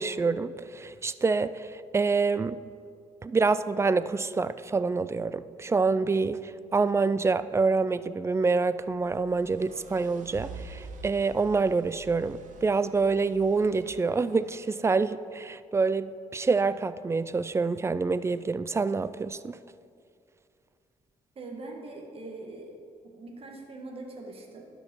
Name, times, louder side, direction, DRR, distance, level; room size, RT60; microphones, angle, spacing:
voice 1, 0.0-2.6 3.2-19.6, right 4 dB, 20° right, 15 dB, 0.3 m, -27 dB
sound 1, 8.7-14.7, right 4 dB, 70° right, 1.1 m, -47 dB
voice 2, 21.4-22.8 23.2-24.6, right 2 dB, 45° right, 1 dB, 1.8 m, -42 dB
11.5 x 5.4 x 6.2 m, 2.3 s
cardioid pair, 105°, 14 cm